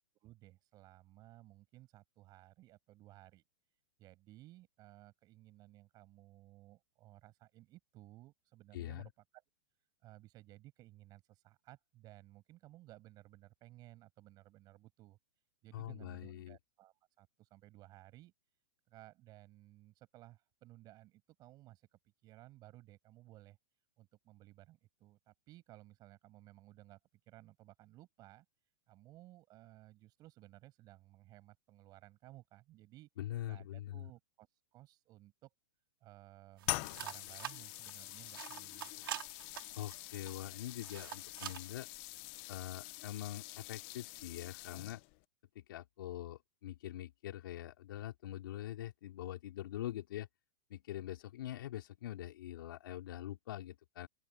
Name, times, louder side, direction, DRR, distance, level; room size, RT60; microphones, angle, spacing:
voice 1, 0.2-3.4 4.0-9.4 10.0-15.2 15.6-18.3 18.9-23.6 24.0-27.0 27.3-28.5 28.9-33.1 33.5-35.5 36.0-39.2, right 16 dB, 35° right, 7.8 m, -58 dB
voice 2, 8.7-9.1 15.7-16.6 33.2-34.1 39.7-41.9 42.5-45.0 45.5-50.3 50.7-54.1, left 13 dB, 70° left, 4.4 m, -44 dB
sound 1, 36.6-45.2, left 23 dB, 40° left, 1.1 m, -45 dB
sound 2, 36.6-41.8, right 11 dB, 80° right, 5.5 m, -48 dB
open air
hypercardioid pair, 145°, 12 cm